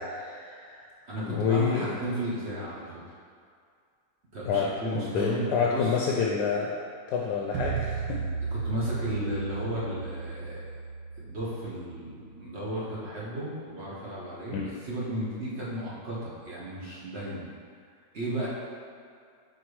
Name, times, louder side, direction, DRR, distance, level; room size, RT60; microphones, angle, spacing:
voice 1, 0.0-0.9 1.2-1.9 4.5-8.2 14.5-14.7, left 5 dB, 75° left, -2 dB, 1.1 m, -28 dB
voice 2, 1.0-3.2 4.3-6.0 8.5-10.7 11.1-14.6 14.8-17.4 18.1-18.5, right 1 dB, 45° right, -7 dB, 1.0 m, -34 dB
sound 1, 7.5-12.6, right 5 dB, 80° right, 1.2 m, -35 dB
4.6 x 4.3 x 4.7 m, 2.2 s
omnidirectional pair, 2.0 m